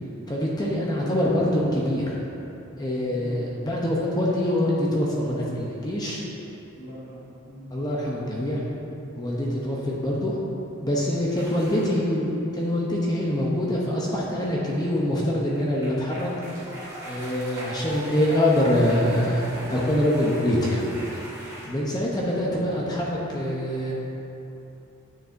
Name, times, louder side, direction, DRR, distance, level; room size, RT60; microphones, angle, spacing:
voice 1, 0.3-2.2 2.8-6.2 7.7-8.6 9.2-10.4 10.8-16.3 17.0-19.4 19.7-21.0 21.6-23.9, left 1 dB, 20° left, -4 dB, 0.7 m, -24 dB
voice 2, 6.8-7.7 11.6-12.2, equal, 40° left, -11 dB, 1.2 m, -42 dB
sound 1, 11.3-12.1 15.4-21.7, right 1 dB, 15° right, 1.2 m, -40 dB
9.5 x 6.6 x 2.6 m, 2.9 s
head